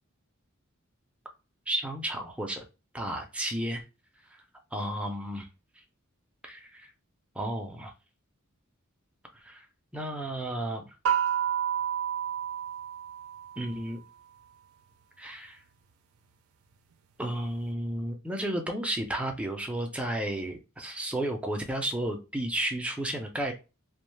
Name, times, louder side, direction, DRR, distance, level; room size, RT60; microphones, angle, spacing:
voice 1, 1.7-2.6 2.9-3.8 4.7-5.5 6.4-6.9 7.4-7.9 9.4-9.6 9.9-10.9 13.6-14.0 15.2-15.6 17.2-23.5, right 1 dB, 5° right, 3 dB, 0.5 m, -32 dB
sound 1, 11.1-13.8, right 9 dB, 85° right, 0.4 m, -30 dB
2.4 x 2.2 x 3.2 m, 0.30 s
head